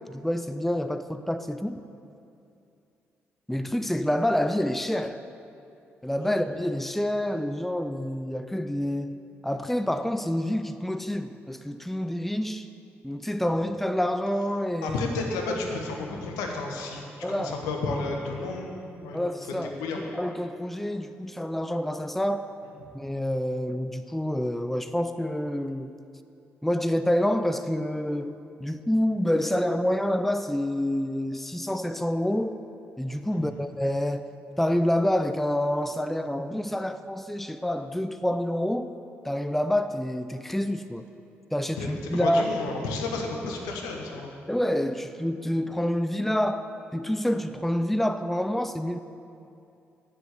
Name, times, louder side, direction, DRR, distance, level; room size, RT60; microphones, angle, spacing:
voice 1, 0.1-1.8 3.5-5.2 6.0-12.7 13.0-15.0 15.5-15.6 17.2-17.6 19.1-19.7 20.1-22.5 22.9-25.9 26.6-28.4 28.6-32.6 33.0-34.3 34.6-38.9 39.2-41.1 41.5-42.5 44.5-49.0, left 1 dB, 5° left, 0.5 m, -27 dB
voice 2, 14.8-17.0 17.3-19.2 19.8-20.0 33.3-33.6 41.8-44.3, left 3 dB, 75° left, 1.3 m, -32 dB
9.3 x 7.8 x 8.3 m
hypercardioid pair, 40°, 6 cm